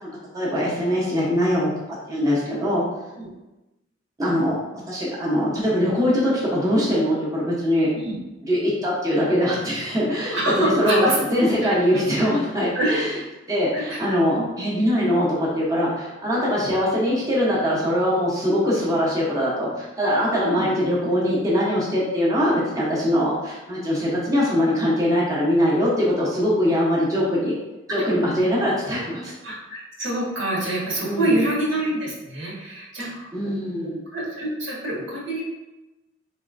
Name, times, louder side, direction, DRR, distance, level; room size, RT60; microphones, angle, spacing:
voice 1, 0.0-1.7 2.1-2.8 4.2-4.5 4.9-7.9 8.4-13.2 13.5-27.5 27.9-29.3 31.0-31.4 33.0-34.0, equal, 20° right, -7 dB, 0.8 m, -22 dB
voice 2, 2.5-2.8 3.2-3.3 7.9-8.1 10.3-11.1 11.6-12.1 12.7-12.9 13.7-14.5 20.4-20.7 27.9-28.0 28.8-33.5 34.1-35.4, right 1 dB, 80° right, -5 dB, 1.3 m, -27 dB
4.2 x 3.1 x 2.5 m, 1.0 s
head